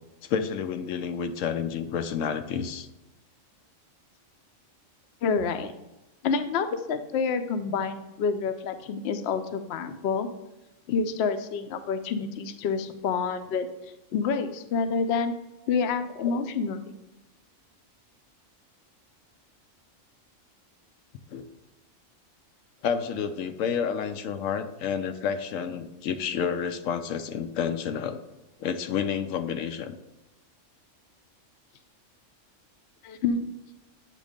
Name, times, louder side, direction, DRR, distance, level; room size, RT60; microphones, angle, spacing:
voice 1, 0.2-2.9 16.2-16.4 21.3-21.5 22.8-28.2 28.6-30.0, left 7 dB, 85° left, 8 dB, 1.0 m, -30 dB
voice 2, 5.2-5.7 6.2-10.3 10.9-13.7 14.1-15.3 15.7-16.8 33.0-33.4, left 5 dB, 65° left, 8 dB, 0.8 m, -28 dB
8.3 x 3.0 x 5.1 m, 1.0 s
omnidirectional pair, 1.3 m